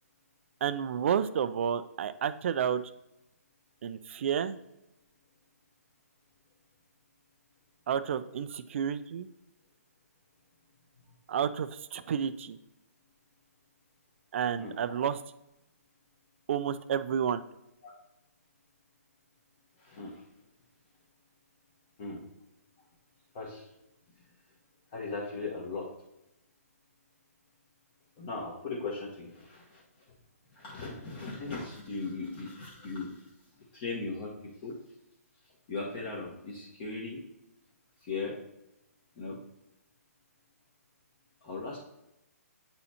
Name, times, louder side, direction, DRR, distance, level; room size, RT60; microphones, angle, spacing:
voice 1, 0.6-2.8 3.8-4.6 7.9-9.3 11.3-12.6 14.3-15.2 16.5-17.4, right 8 dB, 50° right, 11 dB, 0.3 m, -30 dB
voice 2, 14.6-15.1 17.8-17.9 19.8-20.2 22.0-22.2 23.3-23.7 24.9-25.9 28.2-29.8 30.5-33.3 33.7-34.3 34.6-34.8 35.7-37.2 38.0-38.4 39.2-39.4 41.4-41.8, left 3 dB, 35° left, -5 dB, 1.2 m, -38 dB
8.6 x 4.2 x 2.8 m, 0.87 s
hypercardioid pair, 155°, 9 cm